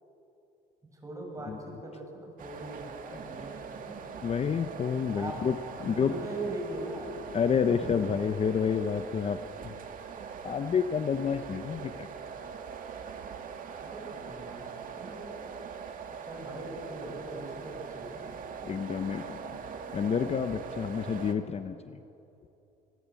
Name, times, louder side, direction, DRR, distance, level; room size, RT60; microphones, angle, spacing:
voice 1, 0.9-4.1 5.1-5.4 5.8-7.1 7.5-8.2 13.9-15.4 16.2-18.3, right 1 dB, 20° right, 1 dB, 7.1 m, -41 dB
sound 1, 2.4-21.4, right 6 dB, 55° right, 2.1 m, -42 dB
voice 2, 4.2-5.5 5.8-6.1 7.3-9.7 10.4-12.1 18.6-19.6 19.9-22.0, left 6 dB, 40° left, 9 dB, 0.9 m, -29 dB
26.5 x 21.0 x 8.5 m, 2.9 s
cardioid pair, 110°, 17 cm